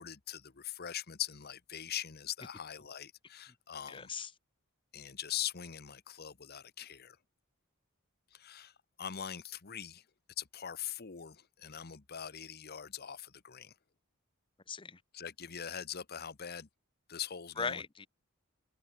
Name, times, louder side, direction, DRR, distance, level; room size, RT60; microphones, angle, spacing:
voice 1, 0.0-4.1 4.9-7.2 8.3-8.7 9.0-10.0 10.4-13.7 15.1-16.7 17.1-17.8, left 9 dB, 50° left, 1.0 m, -42 dB
voice 2, 3.9-4.3 14.7-15.0 17.6-18.1, left 5 dB, 25° left, 0.8 m, -38 dB
head